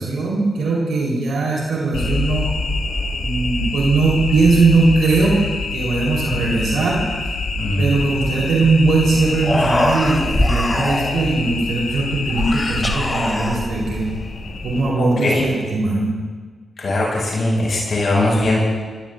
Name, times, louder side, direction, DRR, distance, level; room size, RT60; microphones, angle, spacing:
voice 1, 0.0-2.5 3.2-5.4 5.7-7.0 7.8-14.1 14.6-16.1, right 3 dB, 80° right, -4 dB, 3.7 m, -19 dB
sound 1, 1.9-14.8, left 2 dB, 80° left, 5.9 m, -26 dB
Human voice, 9.0-9.1 9.3-11.4 12.3-14.0, left 1 dB, 25° left, 2.3 m, -22 dB
voice 2, 15.0-15.4 16.8-18.6, left 2 dB, 65° left, -4 dB, 5.6 m, -20 dB
24.5 x 19.0 x 2.5 m, 1.5 s
supercardioid pair, 40°, 0 cm